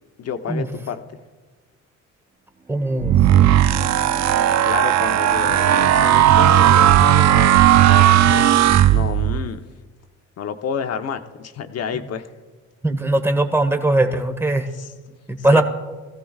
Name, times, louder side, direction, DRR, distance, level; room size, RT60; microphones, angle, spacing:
voice 1, 0.2-1.2 4.6-7.6 7.9-8.5 8.9-9.6 10.4-12.3 14.7-15.2 15.5-15.6, left 7 dB, 55° left, 7 dB, 0.9 m, -29 dB
Bowed string instrument, 2.5-8.1, right 3 dB, 30° right, 2.8 m, -38 dB
voice 2, 2.7-3.2 12.8-14.7 15.3-15.6, right 2 dB, 10° right, 7 dB, 1.3 m, -19 dB
sound 1, 3.0-9.5, right 11 dB, 65° right, 0.5 m, -15 dB
20.5 x 15.5 x 2.4 m, 1.3 s
cardioid pair, 90°, 30 cm